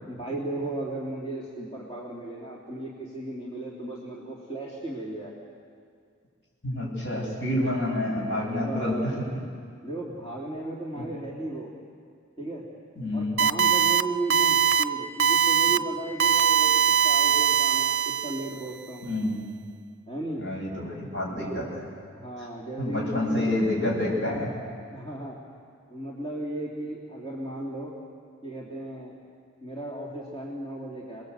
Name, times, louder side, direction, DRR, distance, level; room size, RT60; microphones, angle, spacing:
voice 1, 0.0-5.4 7.7-9.2 9.8-11.7 12.4-12.6 13.1-19.1 20.1-20.5 21.2-21.7 22.1-23.6 24.9-25.4 25.9-27.9 28.4-29.2 29.6-31.2, right 1 dB, 25° left, -5 dB, 3.0 m, -35 dB
voice 2, 6.6-9.3 13.0-13.4 19.0-19.4 20.4-21.9 22.8-24.5, left 1 dB, 60° left, -3 dB, 7.9 m, -28 dB
sound 1, 13.4-14.0 14.3-14.8 15.2-15.8 16.2-18.5, right 8 dB, 55° right, 0.7 m, -21 dB
27.0 x 21.5 x 8.2 m, 2.2 s
head